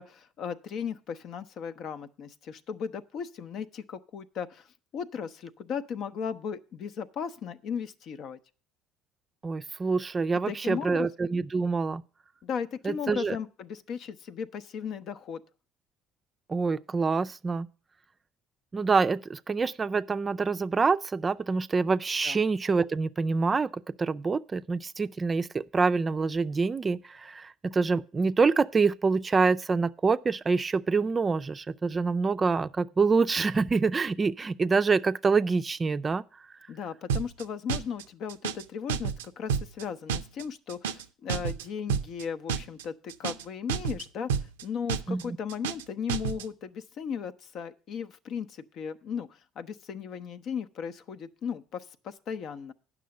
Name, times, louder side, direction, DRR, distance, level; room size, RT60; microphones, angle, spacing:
voice 1, 0.0-4.7 4.9-8.4 10.5-11.1 12.4-15.4 22.2-22.4 36.7-52.7, left 7 dB, 60° left, 0.7 m, -36 dB
voice 2, 9.4-12.0 12.8-13.4 16.5-17.7 18.7-23.7 24.0-36.2 45.1-45.4, right 4 dB, 30° right, 0.4 m, -26 dB
sound 1, 37.1-37.4 37.7-38.0 38.3-38.6 38.9-39.2 39.5-39.8 40.1-40.4 40.7-41.0 41.3-41.6 41.9-42.2 42.5-42.8 43.1-43.4 43.7-44.0 44.3-44.6 44.9-45.2 45.5-45.8 46.1-46.4, right 7 dB, 90° right, 0.4 m, -30 dB
9.2 x 6.1 x 7.5 m
hypercardioid pair, 65°, 0 cm